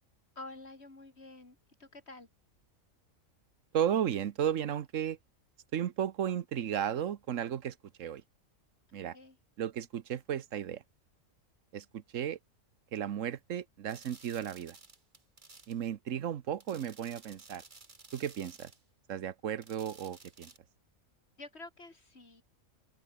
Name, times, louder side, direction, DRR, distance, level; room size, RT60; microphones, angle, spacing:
voice 1, 0.4-2.3 9.1-9.4 21.4-22.4, left 2 dB, 50° left, 3.6 m, -49 dB
voice 2, 3.7-5.2 5.7-8.2 8.9-9.2 9.6-10.8 11.7-12.4 12.9-14.8 15.7-17.6 18.1-18.7 19.1-20.5, right 9 dB, 70° right, 1.2 m, -34 dB
sound 1, 13.9-15.8 16.6-18.8 19.6-20.6, right 3 dB, 35° right, 2.2 m, -55 dB
open air
omnidirectional pair, 1.4 m